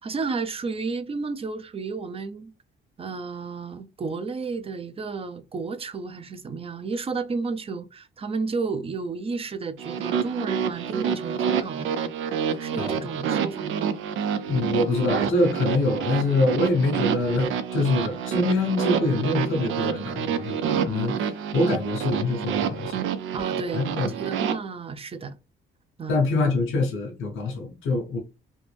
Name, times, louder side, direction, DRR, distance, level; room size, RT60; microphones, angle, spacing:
voice 1, 0.0-2.5 3.0-11.9 12.6-13.9 23.3-25.4 26.0-26.2, right 4 dB, 30° right, 0.6 m, -32 dB
sound 1, 9.8-24.5, right 8 dB, 80° right, 0.5 m, -28 dB
voice 2, 14.5-23.0 23.7-24.1 26.1-28.2, left 2 dB, 85° left, 1.0 m, -25 dB
3.5 x 2.6 x 3.3 m
cardioid pair, 90°, 20 cm